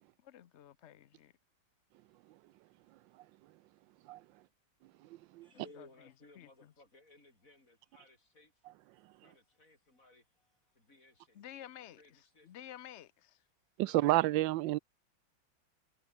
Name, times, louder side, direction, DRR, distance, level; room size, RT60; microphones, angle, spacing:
voice 1, 0.3-1.3 6.4-6.5 11.4-12.0 12.5-13.3, left 11 dB, 65° left, 0.7 m, -50 dB
voice 2, 5.4-8.6 9.2-12.7 13.8-14.1, left 2 dB, 45° left, 6.2 m, -61 dB
voice 3, 13.8-14.8, right 17 dB, 80° right, 1.3 m, -29 dB
omnidirectional pair, 2.0 m